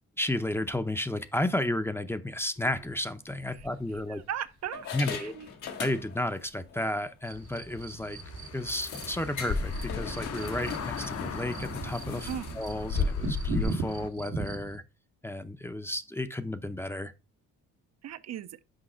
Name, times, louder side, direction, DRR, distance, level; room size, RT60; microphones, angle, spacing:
voice 1, 0.2-4.2 4.9-5.3 5.8-8.2 8.5-12.3 12.6-14.8 15.2-17.1, left 1 dB, 10° left, 0.6 m, -32 dB
sound 1, 2.7-2.9 3.6-4.3 4.7-6.4 6.7-6.8 7.3-7.4 7.7-7.8 8.7-13.6, left 4 dB, 80° left, 1.6 m, -35 dB
voice 2, 4.1-5.5 12.3-12.5 18.0-18.6, right 10 dB, 60° right, 0.6 m, -38 dB
sound 2, 7.2-14.8, right 3 dB, 90° right, 1.6 m, -38 dB
Car passing by / Engine, 7.3-14.1, left 7 dB, 55° left, 0.9 m, -43 dB
6.5 x 4.7 x 4.3 m
cardioid pair, 90°, 30 cm